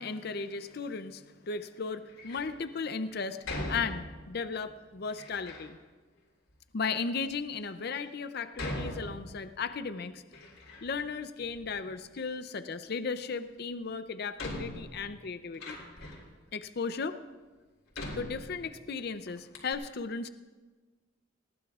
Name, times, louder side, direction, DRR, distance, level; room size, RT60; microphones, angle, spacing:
voice 1, 0.0-3.4 3.7-5.8 6.7-10.2 10.8-15.8 16.5-17.2 18.1-20.3, left 5 dB, 50° left, 11 dB, 0.5 m, -36 dB
Door, 2.1-2.6 3.4-4.4 5.1-5.7 6.5-6.6 7.3-7.4 8.5-9.7 10.0-11.1 11.4-12.2 13.6-13.7 14.4-16.3 17.0-17.1 17.9-19.0 19.3-19.4 19.5-19.7, left 1 dB, 75° left, 3.5 m, -41 dB
20.0 x 18.0 x 2.4 m, 1.3 s
head